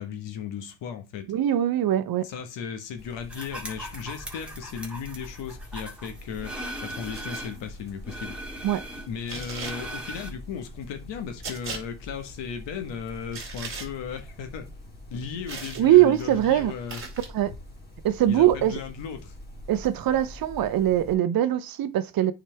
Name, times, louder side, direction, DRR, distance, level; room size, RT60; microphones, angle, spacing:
voice 1, 0.0-1.3 2.2-6.5 6.8-8.3 9.1-14.7 15.1-17.0 18.3-19.4, left 7 dB, 65° left, 1.7 m, -36 dB
voice 2, 1.3-2.3 8.6-8.8 15.8-16.7 17.3-17.5 18.0-18.8 19.7-22.3, right 12 dB, 50° right, 0.8 m, -22 dB
sound 1, 3.0-21.1, left 1 dB, 20° left, 2.9 m, -45 dB
sound 2, 3.3-7.6 8.0-10.3, right 1 dB, ahead, 2.0 m, -39 dB
sound 3, 7.1-7.4 9.3-9.8 11.4-11.8 13.3-13.9 15.5-15.8 16.9-17.3, right 4 dB, 25° right, 2.7 m, -37 dB
9.1 x 4.9 x 3.5 m
supercardioid pair, 95°, 47 cm